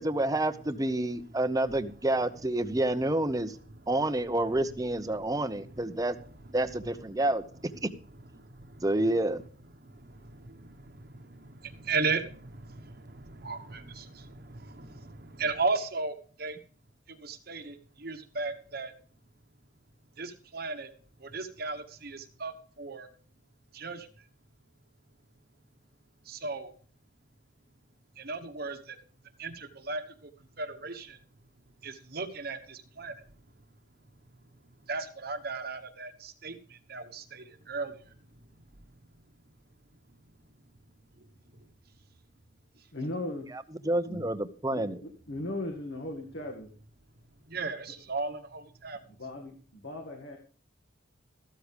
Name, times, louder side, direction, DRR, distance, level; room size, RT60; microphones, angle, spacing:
voice 1, 0.0-3.6 3.9-6.2 6.5-7.4 7.8-7.9 8.8-9.4 43.5-45.0, right 1 dB, 20° right, 12 dB, 0.8 m, -28 dB
voice 2, 8.4-8.8 9.9-16.6 17.1-18.9 20.2-20.9 21.2-23.1 23.7-24.1 26.3-26.7 28.2-29.0 29.4-30.0 30.6-31.2 31.8-33.1 34.9-37.9 47.5-49.0, right 4 dB, 50° right, 6 dB, 1.2 m, -36 dB
voice 3, 42.9-43.5 44.1-44.3 44.7-46.7 49.1-50.4, left 1 dB, 65° left, 2 dB, 2.0 m, -38 dB
14.0 x 13.0 x 3.4 m, 0.41 s
head